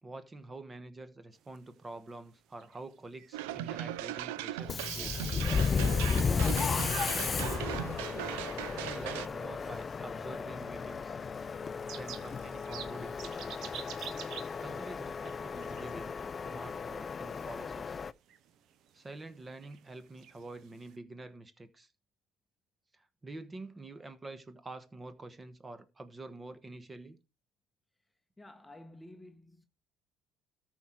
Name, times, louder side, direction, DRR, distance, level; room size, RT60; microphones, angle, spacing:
voice 1, 0.0-5.4 6.1-7.6 8.8-11.2 11.9-13.6 14.6-16.1 16.4-18.0 18.9-21.9 22.9-27.2, right 2 dB, 25° right, 1.3 m, -47 dB
sound 1, 1.3-21.0, right 10 dB, 65° right, 0.8 m, -53 dB
sound 2, 3.3-9.3, right 14 dB, 85° right, 0.4 m, -38 dB
Subway metro underground, 4.6-18.1, left 5 dB, 35° left, 0.4 m, -34 dB
voice 2, 28.4-29.7, left 1 dB, 10° left, 0.9 m, -52 dB
13.5 x 4.6 x 4.5 m
supercardioid pair, 70°, 0 cm